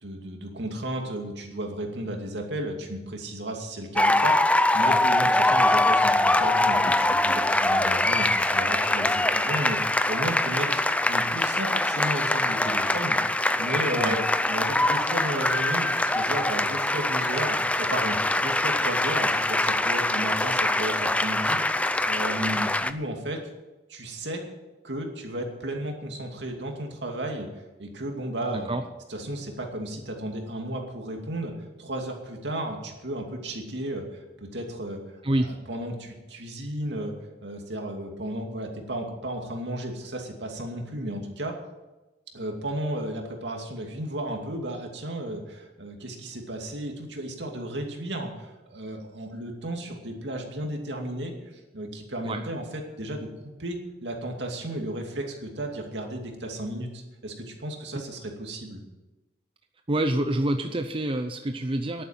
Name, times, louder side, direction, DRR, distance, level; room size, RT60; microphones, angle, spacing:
voice 1, 0.0-10.8 11.1-23.4 23.9-24.4 24.8-27.5 27.8-28.7 29.1-31.5 31.8-35.0 35.3-35.4 35.7-37.1 37.4-41.5 42.3-53.3 53.6-58.8, right 1 dB, 70° right, 2 dB, 2.5 m, -34 dB
sound 1, 4.0-22.9, left 2 dB, 10° left, 0.5 m, -23 dB
voice 2, 28.5-28.8 35.2-35.5 52.2-52.4 59.9-62.0, right 1 dB, 30° right, 6 dB, 0.7 m, -27 dB
11.0 x 9.2 x 9.0 m, 1.1 s
head